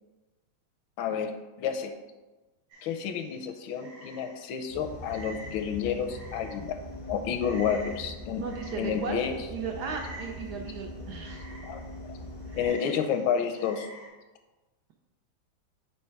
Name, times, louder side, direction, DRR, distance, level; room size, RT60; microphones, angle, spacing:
voice 1, 1.0-1.3 1.6-2.0 2.8-6.8 7.1-8.4 8.8-9.4 11.6-12.1 12.6-13.9, left 7 dB, 85° left, 6 dB, 1.4 m, -30 dB
Frog, 2.7-14.1, right 2 dB, 55° right, 2.0 m, -50 dB
sound 1, 4.7-12.7, left 1 dB, 55° left, 0.4 m, -42 dB
voice 2, 8.4-9.2 9.5-11.5, right 5 dB, 75° right, 3 dB, 1.0 m, -36 dB
6.6 x 3.2 x 4.5 m, 1.2 s
omnidirectional pair, 2.1 m